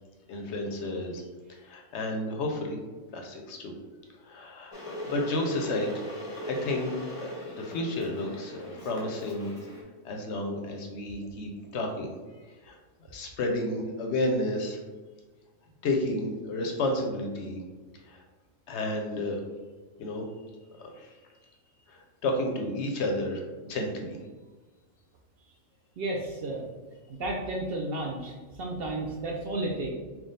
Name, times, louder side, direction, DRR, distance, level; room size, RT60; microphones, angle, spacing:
voice 1, 0.3-1.2 1.6-2.8 3.1-3.7 4.2-4.7 5.1-6.0 6.5-9.5 10.0-12.1 12.6-12.8 13.1-14.8 15.8-17.6 18.0-18.2 18.7-19.4 20.0-20.2 20.8-21.1 21.9-24.2, left 1 dB, 65° left, 2 dB, 0.8 m, -31 dB
Water / Boiling, 4.7-9.8, left 1 dB, 35° left, 0.6 m, -40 dB
voice 2, 26.0-26.7 27.1-29.9, right 2 dB, 60° right, -1 dB, 0.6 m, -32 dB
3.5 x 2.3 x 3.8 m, 1.3 s
omnidirectional pair, 1.4 m